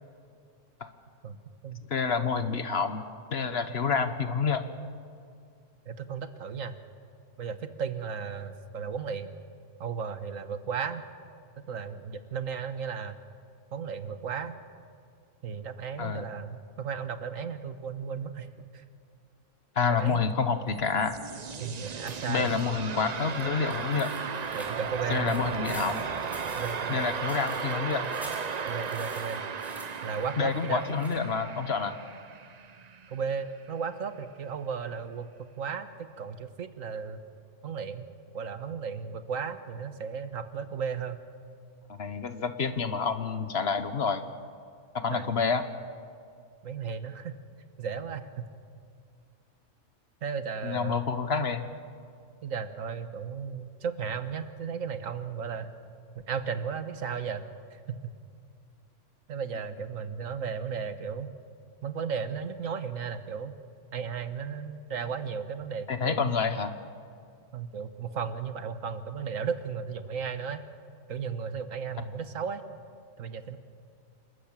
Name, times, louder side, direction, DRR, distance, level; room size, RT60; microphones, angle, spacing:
voice 1, 1.9-3.0 3.3-4.6 16.0-16.2 19.8-21.2 22.3-24.1 25.1-26.0 26.9-28.1 30.4-32.0 41.9-44.2 44.9-45.6 50.6-51.6 65.9-66.8, left 5 dB, 55° left, 10 dB, 1.3 m, -28 dB
voice 2, 5.9-6.8 7.4-9.3 9.8-11.0 11.6-13.2 13.7-14.5 15.4-18.8 20.0-20.2 21.6-22.6 24.5-25.4 26.5-27.2 28.7-29.4 30.0-30.8 33.1-35.9 36.2-37.2 37.6-38.1 38.3-41.2 45.1-45.3 46.6-47.4 47.8-48.5 50.2-51.0 52.4-55.7 56.1-57.4 57.7-58.0 59.3-61.3 61.8-63.5 63.9-66.4 67.5-70.6 71.1-72.6 73.2-73.6, right 6 dB, 85° right, 10 dB, 1.5 m, -35 dB
sound 1, 20.7-33.4, right 6 dB, 40° right, 0.6 m, -36 dB
sound 2, 22.1-31.1, equal, ahead, 4.3 m, -49 dB
28.0 x 13.0 x 8.9 m, 2.4 s
omnidirectional pair, 1.3 m